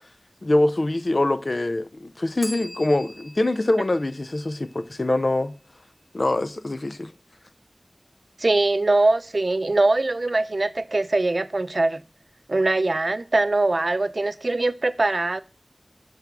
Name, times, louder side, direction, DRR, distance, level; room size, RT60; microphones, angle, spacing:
voice 1, 0.4-5.5 6.1-7.1, left 2 dB, 70° left, 0.4 m, -24 dB
Bell, 2.4-5.2, equal, 5° left, 1.0 m, -43 dB
voice 2, 8.4-12.0 12.5-15.4, right 2 dB, 80° right, 0.3 m, -22 dB
5.7 x 3.5 x 5.8 m
wide cardioid pair, 45°, 0 cm